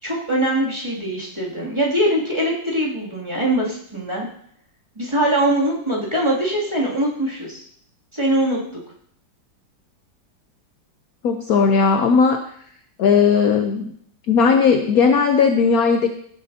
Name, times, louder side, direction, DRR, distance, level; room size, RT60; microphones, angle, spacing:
voice 1, 0.0-4.3 5.0-7.6 8.1-8.6, right 1 dB, 15° right, -5 dB, 2.4 m, -22 dB
voice 2, 11.2-12.4 13.0-13.9 14.3-16.1, left 5 dB, 65° left, 6 dB, 1.0 m, -16 dB
16.5 x 7.8 x 2.7 m, 0.64 s
omnidirectional pair, 2.1 m